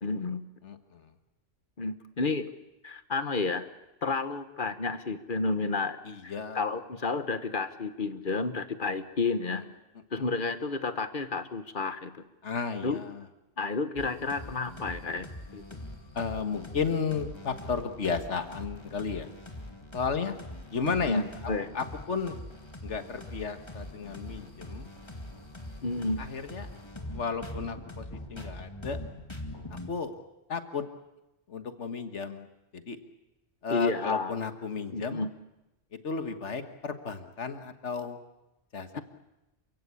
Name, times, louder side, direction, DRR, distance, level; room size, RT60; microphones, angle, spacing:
voice 1, 0.0-0.4 1.8-2.5 2.8-3.7 4.0-9.6 10.1-12.1 12.8-13.0 13.6-15.3 15.5-15.6 21.1-21.7 25.8-26.2 33.7-34.3 34.9-35.3 38.9-39.0, left 3 dB, 50° left, 11 dB, 1.3 m, -31 dB
voice 2, 0.6-1.1 6.0-6.7 9.5-9.7 10.2-10.4 12.4-13.2 16.1-19.3 19.9-20.4 20.7-21.2 21.7-22.3 22.8-24.9 26.2-26.7 27.1-29.0 29.9-30.1 30.5-30.8 31.5-32.5 32.7-33.0 33.6-35.2 36.0-38.2 38.7-39.0, left 5 dB, 85° left, 8 dB, 1.8 m, -33 dB
sound 1, 14.0-29.9, left 1 dB, 25° left, 2.2 m, -43 dB
28.0 x 16.5 x 8.5 m, 0.96 s
omnidirectional pair, 1.2 m